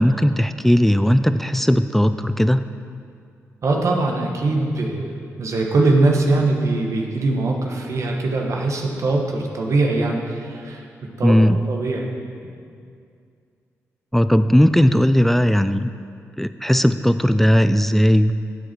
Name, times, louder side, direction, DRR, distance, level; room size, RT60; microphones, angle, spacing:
voice 1, 0.0-2.6 11.2-11.6 14.1-15.9 16.4-18.3, equal, 5° left, 11 dB, 0.4 m, -17 dB
voice 2, 3.6-11.4 11.7-12.1, right 2 dB, 60° right, 1 dB, 1.4 m, -21 dB
11.5 x 7.6 x 4.5 m, 2.3 s
cardioid pair, 60°, 6 cm